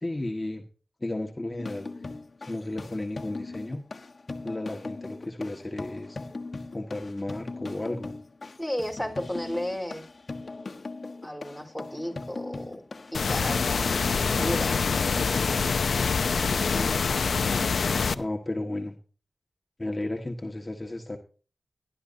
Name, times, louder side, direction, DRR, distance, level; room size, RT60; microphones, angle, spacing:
voice 1, 0.0-0.6 1.0-1.9 2.4-3.8 4.4-6.2 6.7-8.1 16.7-17.2 18.1-18.9 19.8-21.2, left 2 dB, 30° left, 3 dB, 1.7 m, -33 dB
sound 1, 1.6-15.7, left 3 dB, 60° left, 1.3 m, -40 dB
voice 2, 8.6-10.0 11.2-12.8 13.1-15.0, equal, 5° right, 2 dB, 4.3 m, -33 dB
sound 2, 13.1-18.1, left 5 dB, 80° left, 0.7 m, -25 dB
18.0 x 11.5 x 2.8 m, 0.37 s
cardioid pair, 45°, 0 cm